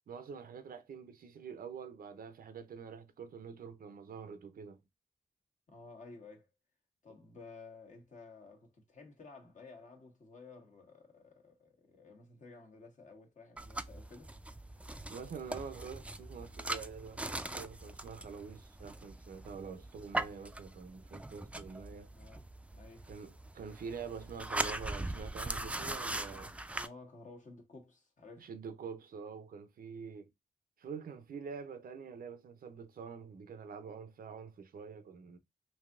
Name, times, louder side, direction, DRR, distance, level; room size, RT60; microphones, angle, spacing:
voice 1, 0.1-4.8 15.1-22.1 23.1-26.5 28.4-30.3 30.8-35.4, right 6 dB, 90° right, 0.5 m, -46 dB
voice 2, 5.7-6.5 7.0-14.3 22.1-22.5 22.7-23.1 26.7-28.5, left 3 dB, 60° left, 1.2 m, -54 dB
sound 1, 13.6-26.9, right 2 dB, 10° right, 0.3 m, -41 dB
3.3 x 2.7 x 2.4 m
cardioid pair, 70°, 15 cm